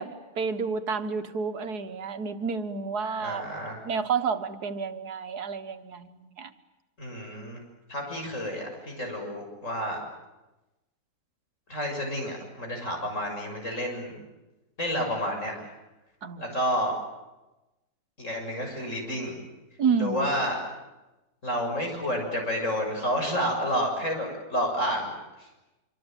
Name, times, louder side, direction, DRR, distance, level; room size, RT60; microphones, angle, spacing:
voice 1, 0.0-3.4 3.8-6.5 16.2-16.6 19.8-20.3, right 5 dB, 75° right, 9 dB, 2.0 m, -30 dB
voice 2, 3.2-3.8 7.0-7.6 7.9-10.0 11.7-14.2 14.8-15.7 16.4-17.0 18.2-19.4 20.0-20.6 21.4-25.1 25.4-25.5, equal, 50° left, 2 dB, 7.1 m, -30 dB
25.5 x 25.5 x 9.2 m, 1.0 s
omnidirectional pair, 1.7 m